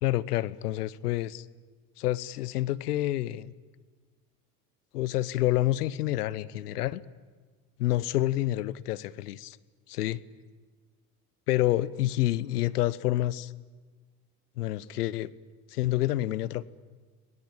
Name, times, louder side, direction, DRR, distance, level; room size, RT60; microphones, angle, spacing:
voice 1, 0.0-1.4 2.0-3.5 4.9-7.0 7.8-9.6 9.9-10.2 11.5-13.5 14.6-15.3 15.7-16.6, left 15 dB, 80° left, 20 dB, 1.0 m, -28 dB
29.5 x 20.5 x 9.0 m, 1.5 s
hypercardioid pair, 65°, 46 cm